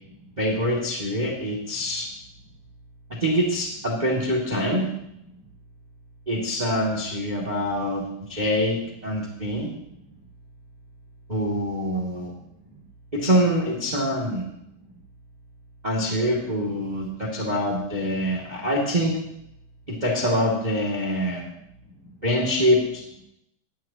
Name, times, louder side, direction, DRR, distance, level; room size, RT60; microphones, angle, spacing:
voice 1, 0.4-2.1 3.1-4.9 6.3-9.7 11.3-12.3 13.1-14.4 15.8-19.2 19.9-21.4 22.2-23.0, equal, 15° right, -1 dB, 1.4 m, -25 dB
voice 2, 9.6-10.2 11.9-12.8 14.6-15.0 16.9-17.3 18.1-18.7 21.3-22.2, right 1 dB, 35° left, -1 dB, 4.7 m, -51 dB
20.5 x 17.5 x 3.0 m, 0.79 s
omnidirectional pair, 5.5 m